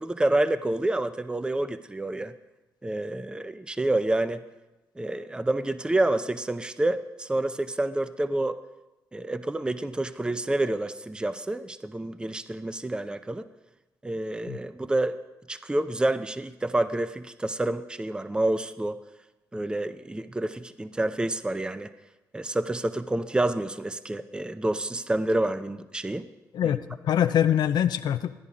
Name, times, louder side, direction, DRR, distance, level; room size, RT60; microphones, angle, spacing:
voice 1, 0.0-2.3 2.8-4.4 5.0-8.6 9.1-13.5 14.0-15.2 15.5-19.0 19.5-21.9 22.3-26.3 26.6-26.7, right 1 dB, 10° right, 13 dB, 0.5 m, -28 dB
voice 2, 26.5-28.4, left 10 dB, 65° left, 11 dB, 0.4 m, -24 dB
13.0 x 10.5 x 3.7 m, 1.0 s
supercardioid pair, 55°, 8 cm